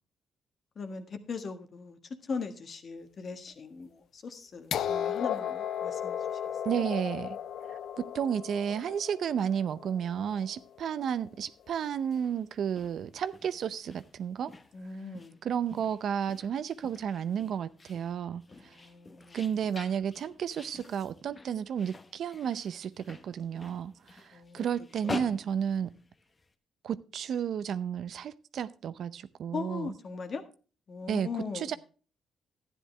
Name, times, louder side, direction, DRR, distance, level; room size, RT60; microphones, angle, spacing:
voice 1, 0.7-6.4 14.7-15.4 18.5-19.4 24.3-24.7 25.0-25.1 29.5-30.4 30.9-31.8, left 4 dB, 50° left, 1.5 m, -39 dB
sound 1, 4.7-10.6 11.7-11.8, left 9 dB, 70° left, 0.5 m, -35 dB
voice 2, 6.6-7.4 7.7-14.5 15.4-18.7 19.3-25.9 26.8-29.9 31.1-31.3 31.5-31.8, right 8 dB, 65° right, 0.6 m, -32 dB
sound 2, 12.0-26.5, left 3 dB, 30° left, 1.1 m, -46 dB
12.5 x 10.0 x 3.3 m
cardioid pair, 90°, 0 cm